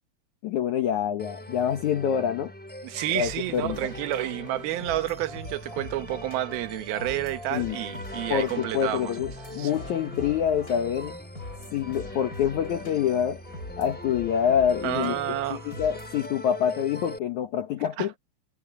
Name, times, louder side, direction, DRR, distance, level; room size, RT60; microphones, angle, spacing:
voice 1, 0.4-2.5 3.1-3.8 7.5-7.8 8.3-11.2 11.7-13.4 13.8-15.2 15.5-18.2, left 9 dB, 90° left, 1.7 m, -26 dB
sound 1, 1.2-17.2, equal, ahead, 3.6 m, -42 dB
voice 2, 2.8-9.1 9.5-9.7 14.8-15.7 18.0-18.2, right 14 dB, 70° right, 2.7 m, -30 dB
sound 2, 3.2-16.3, left 2 dB, 20° left, 6.5 m, -42 dB
omnidirectional pair, 5.2 m